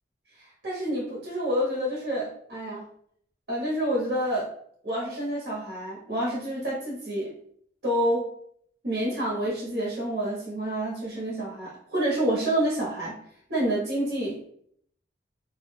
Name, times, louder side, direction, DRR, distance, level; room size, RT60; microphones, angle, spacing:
voice 1, 0.4-2.8 3.5-4.5 4.8-7.3 7.8-8.3 8.8-13.2 13.5-14.5, right 1 dB, 65° right, -6 dB, 1.0 m, -28 dB
2.6 x 2.1 x 3.3 m, 0.65 s
head